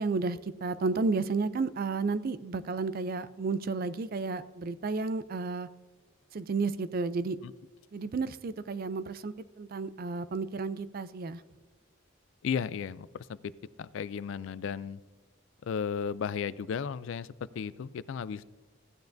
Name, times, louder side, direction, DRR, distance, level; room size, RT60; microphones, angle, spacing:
voice 1, 0.0-5.7 6.3-7.4 7.9-11.4, right 4 dB, 45° right, 15 dB, 0.4 m, -32 dB
voice 2, 12.4-13.1 13.8-15.0 15.7-17.3 17.6-18.4, left 7 dB, 60° left, 18 dB, 0.3 m, -34 dB
15.5 x 9.2 x 2.6 m, 1.3 s
head